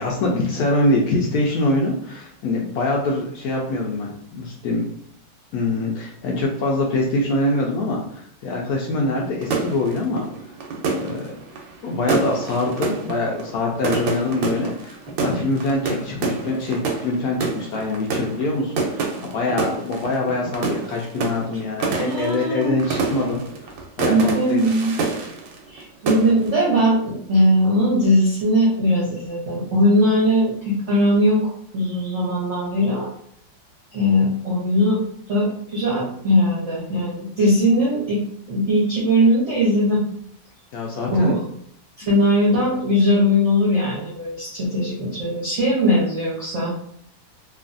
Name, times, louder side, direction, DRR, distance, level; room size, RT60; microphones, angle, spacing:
voice 1, 0.0-4.9 5.5-10.3 10.9-11.3 11.8-23.4 24.0-24.6 40.7-41.3, left 2 dB, 80° left, -2 dB, 0.8 m, -24 dB
sound 1, 9.4-25.8 26.1-26.6, right 4 dB, 85° right, 1.4 m, -27 dB
voice 2, 21.9-22.8 24.1-25.0 25.7-31.4 31.7-33.1 33.9-35.0 35.3-38.2 38.5-40.0 41.1-41.4 42.1-46.7, equal, 60° right, -6 dB, 0.8 m, -19 dB
3.0 x 2.4 x 2.5 m, 0.66 s
omnidirectional pair, 2.1 m